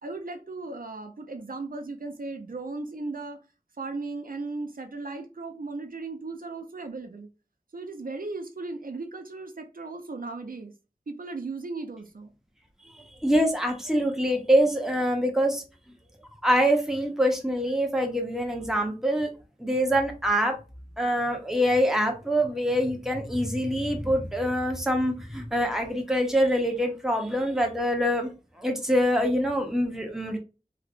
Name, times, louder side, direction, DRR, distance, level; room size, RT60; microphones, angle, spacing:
voice 1, 0.0-3.4 3.8-7.3 7.7-10.7 11.1-12.3, right 3 dB, 70° right, 0.5 m, -36 dB
voice 2, 12.9-15.6 16.4-19.3 19.6-20.6 21.0-28.3 28.6-30.4, equal, 5° right, 0.9 m, -25 dB
3.2 x 2.9 x 2.5 m
wide cardioid pair, 50°, 15 cm